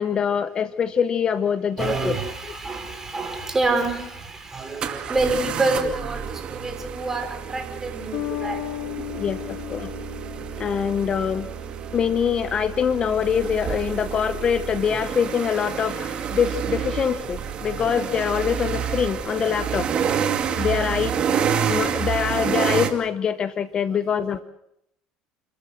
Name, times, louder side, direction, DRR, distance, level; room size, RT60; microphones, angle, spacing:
voice 1, 0.0-2.2 9.2-9.9 10.6-11.5 11.9-20.0 20.6-24.4, left 7 dB, 40° left, 13 dB, 0.9 m, -24 dB
voice 2, 1.8-8.6 13.9-14.0 19.0-19.1 20.7-21.0 23.9-24.0 24.3-24.4, right 3 dB, 20° right, 5 dB, 5.6 m, -27 dB
sound 1, 3.6-3.7 4.8-22.9, right 8 dB, 45° right, 2.5 m, -28 dB
Bass guitar, 8.1-11.7, left 18 dB, 70° left, 3.8 m, -35 dB
29.5 x 14.0 x 7.7 m, 0.79 s
supercardioid pair, 105°, 2 cm